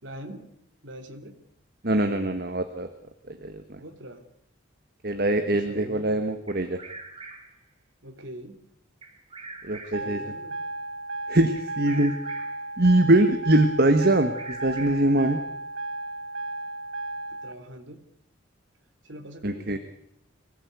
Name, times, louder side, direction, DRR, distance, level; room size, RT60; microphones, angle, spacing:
voice 1, 0.0-0.4 0.8-1.4 3.8-4.2 5.5-6.2 8.0-8.6 9.8-10.6 17.3-18.0 19.0-19.8, equal, 65° right, 5 dB, 3.0 m, -42 dB
voice 2, 1.8-2.9 3.3-3.8 5.0-6.8 9.6-10.2 11.3-12.2 12.8-15.4 19.4-19.8, right 1 dB, 50° right, 8 dB, 1.4 m, -22 dB
Bird vocalization bird call bird song, 6.5-7.6 9.0-10.2 11.5-12.7 14.0-15.2, right 3 dB, 25° right, 2.8 m, -44 dB
sound 1, 9.9-17.5, right 2 dB, 85° right, 1.1 m, -34 dB
24.5 x 17.0 x 8.2 m, 0.74 s
head